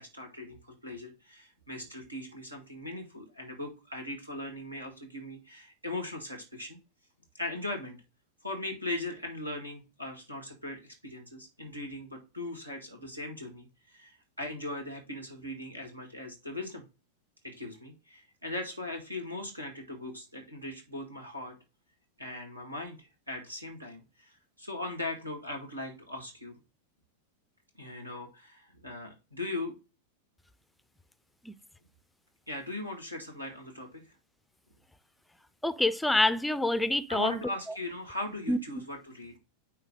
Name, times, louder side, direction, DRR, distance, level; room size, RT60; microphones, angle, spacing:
voice 1, 0.0-6.8 7.3-8.0 8.4-16.8 17.4-21.6 22.2-26.5 27.8-29.7 32.5-34.1 37.1-39.4, left 2 dB, 85° right, 2.0 m, -39 dB
voice 2, 35.6-37.4 37.7-37.8 38.5-38.6, left 1 dB, 5° left, 0.4 m, -26 dB
9.6 x 3.3 x 3.8 m
figure-of-eight pair, 90°, 0 cm